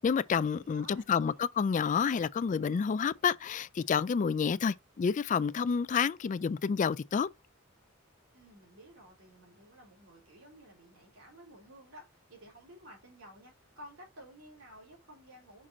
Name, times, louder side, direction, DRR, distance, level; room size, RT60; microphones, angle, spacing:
voice 1, 0.0-7.3, left 6 dB, 40° left, 0.3 m, -29 dB
voice 2, 0.6-1.5 8.3-15.7, equal, 75° right, 3.8 m, -54 dB
6.0 x 4.9 x 4.2 m
head